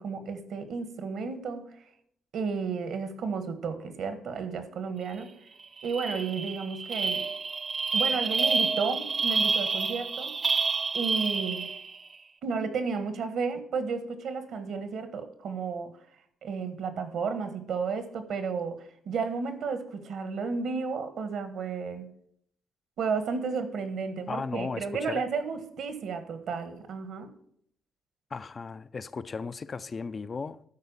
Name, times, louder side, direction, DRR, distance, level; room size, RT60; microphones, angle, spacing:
voice 1, 0.0-1.7 2.3-5.3 5.8-7.2 7.9-10.4 10.9-11.7 12.4-16.0 16.4-22.1 23.0-27.3, right 5 dB, 70° right, 1.4 m, -32 dB
sound 1, 5.2-5.3 5.6-12.0, right 4 dB, 40° right, 0.8 m, -29 dB
voice 2, 24.3-25.3 28.3-30.6, left 4 dB, 35° left, 0.4 m, -36 dB
12.5 x 4.6 x 7.1 m
cardioid pair, 90°, 0 cm